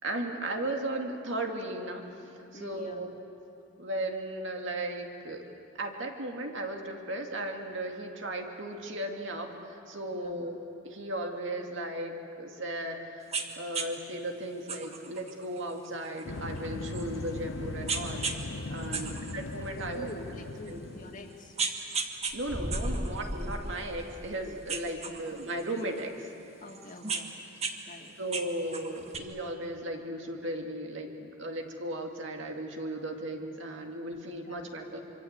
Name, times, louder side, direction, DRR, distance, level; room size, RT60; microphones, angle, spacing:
voice 1, 0.0-2.0 2.3-3.1 3.8-5.5 5.8-10.6 10.8-20.1 20.7-20.8 22.3-26.3 28.2-35.0, right 1 dB, 65° right, 3 dB, 2.4 m, -36 dB
voice 2, 2.5-3.0 10.1-10.5 18.8-19.2 19.7-21.6 25.0-25.1 26.6-27.5 27.9-28.2 34.4-34.7, left 2 dB, 40° left, 2 dB, 2.4 m, -46 dB
sound 1, 13.3-13.5 13.7-13.9 14.7-17.4 17.9-18.4 18.8-20.1 20.7-20.8 21.3-22.4 22.7-24.3 24.7-26.0 26.7-27.8 28.1-29.2, right 4 dB, 30° right, 1.6 m, -35 dB
sound 2, 16.2-21.4, left 2 dB, 65° left, 0.9 m, -39 dB
sound 3, 22.3-24.8, equal, ahead, 0.8 m, -35 dB
25.5 x 25.0 x 8.2 m, 2.8 s
head